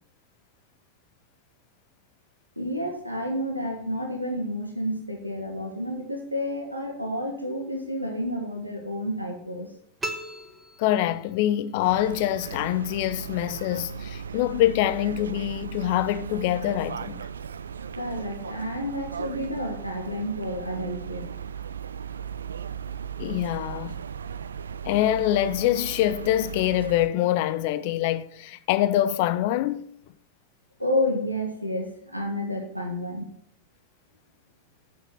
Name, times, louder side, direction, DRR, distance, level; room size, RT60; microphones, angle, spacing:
voice 1, 2.6-9.7 18.0-21.3 30.8-33.3, left 1 dB, 90° right, 1.3 m, -30 dB
sound 1, 10.0-11.6, right 1 dB, 10° right, 1.2 m, -37 dB
voice 2, 10.8-17.2 23.2-24.0 24.9-29.8, left 13 dB, 50° left, 0.6 m, -25 dB
sound 2, 11.8-27.1, right 7 dB, 70° right, 0.3 m, -37 dB
7.3 x 7.0 x 6.5 m
figure-of-eight pair, 90°, 0 cm